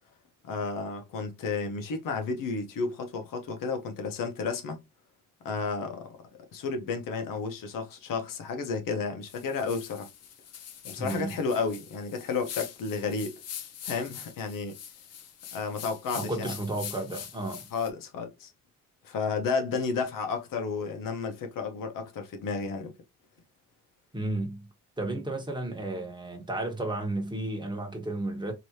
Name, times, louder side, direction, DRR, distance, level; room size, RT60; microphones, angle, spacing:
voice 1, 0.4-4.8 5.4-6.0 6.5-10.1 10.8-13.4 13.8-14.8 15.5-16.5 17.7-18.5 19.0-22.9, left 4 dB, 75° left, 0.9 m, -32 dB
sound 1, 9.2-17.9, left 8 dB, 50° left, 0.7 m, -43 dB
voice 2, 11.0-11.4 16.1-17.7 24.1-24.7 25.0-28.5, right 2 dB, 15° right, 1.3 m, -33 dB
3.2 x 3.0 x 2.7 m
cardioid pair, 105°, 33 cm